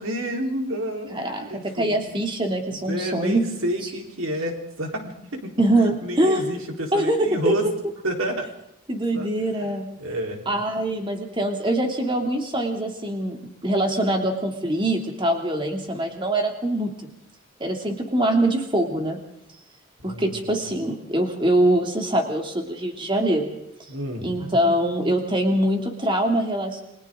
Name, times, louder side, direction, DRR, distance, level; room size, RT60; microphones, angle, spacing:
voice 1, 0.0-1.1 1.4-2.1 2.7-5.6 6.0-7.7 8.0-8.5 9.1-9.3 10.0-10.4 20.0-20.7 23.9-24.3, right 1 dB, 85° right, 2 dB, 4.1 m, -29 dB
voice 2, 1.1-3.5 5.6-6.4 6.9-7.5 8.9-9.9 10.5-13.4 13.6-16.9 17.6-19.2 20.0-23.5 24.2-26.8, right 1 dB, 25° right, 3 dB, 2.6 m, -23 dB
30.0 x 23.0 x 3.8 m, 0.81 s
head